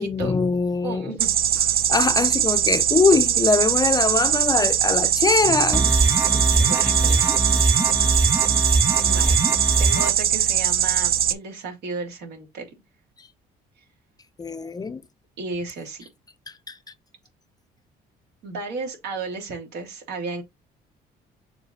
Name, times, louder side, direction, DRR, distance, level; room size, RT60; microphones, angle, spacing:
voice 1, 0.0-1.1 1.9-5.8 6.1-6.3 14.4-15.0 16.7-16.8, left 4 dB, 20° left, 0.5 m, -22 dB
voice 2, 0.8-1.4 6.6-7.3 9.0-9.4 9.8-12.7 15.4-16.0 18.4-20.4, right 4 dB, 75° right, 3.1 m, -33 dB
sound 1, 1.2-11.3, right 10 dB, 60° right, 0.7 m, -21 dB
sound 2, 5.7-10.1, right 2 dB, 20° right, 1.6 m, -22 dB
7.0 x 4.0 x 4.1 m
cardioid pair, 110°, 17 cm